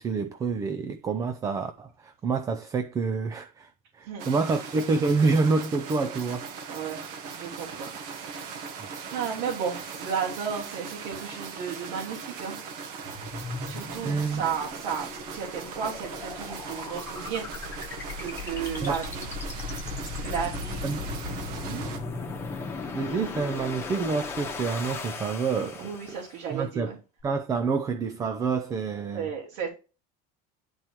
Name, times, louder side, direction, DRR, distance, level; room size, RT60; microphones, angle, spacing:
voice 1, 0.0-6.8 8.8-8.9 13.8-14.4 18.8-18.9 20.8-21.1 22.9-25.9 26.5-26.9 27.2-29.3, right 4 dB, 15° right, 0.4 m, -28 dB
sound 1, 4.2-22.0, right 5 dB, 55° right, 1.5 m, -39 dB
voice 2, 7.3-7.9 8.2-8.7 9.1-12.6 13.6-17.4 18.2-19.3 20.2-20.8 21.6-21.9 25.8-26.9 29.1-29.7, right 7 dB, 85° right, 3.3 m, -33 dB
sound 2, 13.0-26.4, left 4 dB, 10° left, 1.1 m, -37 dB
11.0 x 4.5 x 3.0 m
cardioid pair, 175°, 20 cm